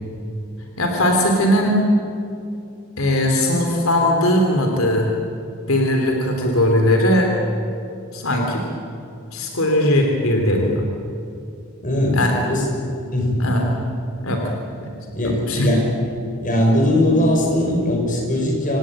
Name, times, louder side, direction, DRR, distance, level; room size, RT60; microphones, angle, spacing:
voice 1, 0.8-1.8 3.0-5.1 5.7-7.3 8.1-8.6 9.3-10.8 12.1-12.3 13.4-13.7 14.2-14.5 15.5-15.7, left 1 dB, 80° left, 2 dB, 3.4 m, -19 dB
voice 2, 11.8-12.2 12.4-12.6 13.1-13.4 15.1-15.8 16.4-18.8, left 1 dB, 40° left, 1 dB, 6.0 m, -19 dB
27.5 x 17.5 x 9.0 m, 2.5 s
head